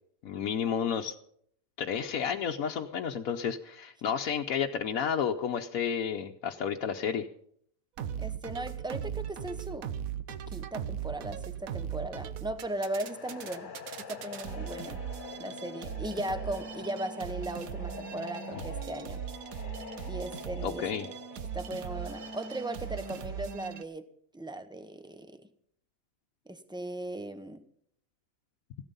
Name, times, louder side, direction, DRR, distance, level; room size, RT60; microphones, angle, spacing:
voice 1, 0.2-1.1 1.8-7.3 20.6-21.1, left 7 dB, 85° left, 2 dB, 1.2 m, -31 dB
sound 1, 8.0-23.8, right 9 dB, 90° right, 1.2 m, -39 dB
voice 2, 8.2-9.9 10.5-13.7 14.1-15.0 15.4-19.2 20.1-20.9 21.5-25.4 26.5-27.6, right 1 dB, 5° right, 10 dB, 0.7 m, -37 dB
sound 2, 12.6-23.8, left 6 dB, 40° left, 0.9 m, -46 dB
16.0 x 12.5 x 5.4 m, 0.68 s
omnidirectional pair, 1.4 m